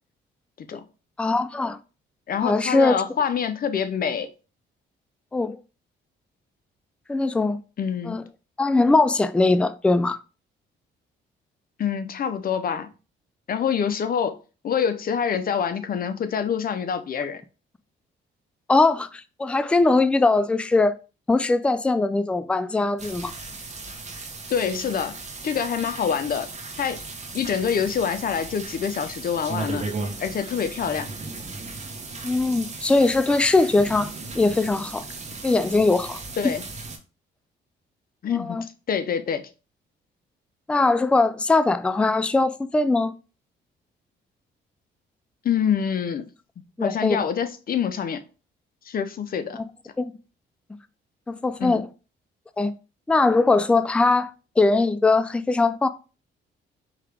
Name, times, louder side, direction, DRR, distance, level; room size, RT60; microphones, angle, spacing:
voice 1, 1.2-1.8 2.4-3.0 5.3-5.6 7.1-7.6 8.1-8.2 8.6-10.2 18.7-20.9 21.3-23.3 32.2-34.1 34.4-35.0 35.4-36.5 38.3-38.6 40.7-43.1 46.8-47.3 50.0-50.1 51.3-51.9 52.6-52.7 53.1-54.3 54.6-55.9, left 3 dB, 5° left, 0.3 m, -21 dB
voice 2, 2.3-4.3 7.8-8.2 11.8-12.9 13.5-14.4 14.6-17.4 24.5-25.2 25.4-26.5 26.8-27.0 27.3-29.9 30.2-31.1 36.4-36.6 38.2-39.4 45.4-46.3 46.8-48.2 48.8-49.6 51.6-51.8, left 7 dB, 45° left, 0.6 m, -26 dB
sound 1, 23.0-37.0, right 3 dB, 35° right, 1.1 m, -36 dB
4.8 x 2.9 x 3.4 m
cardioid pair, 90°, 20 cm